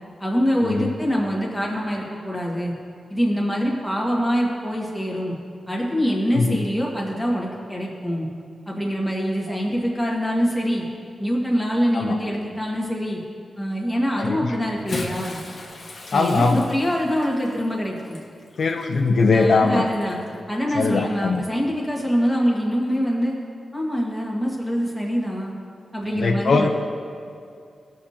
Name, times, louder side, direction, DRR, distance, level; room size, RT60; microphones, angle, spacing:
voice 1, 0.2-2.7 3.1-5.3 5.7-8.3 8.7-10.8 11.2-13.2 13.6-15.4 16.1-18.2 19.3-20.2 20.5-23.4 23.7-25.5 25.9-26.7, equal, ahead, -4 dB, 1.6 m, -24 dB
voice 2, 14.2-14.5 16.1-16.7 18.6-19.9 20.7-21.4 26.0-26.7, left 4 dB, 70° left, 2 dB, 0.6 m, -21 dB
Bathtub (filling or washing) / Splash splatter, 14.7-20.3 21.2-21.4 22.9-23.0, left 2 dB, 45° left, 1.1 m, -38 dB
17.0 x 6.5 x 2.9 m, 2.3 s
wide cardioid pair, 130°, 0 cm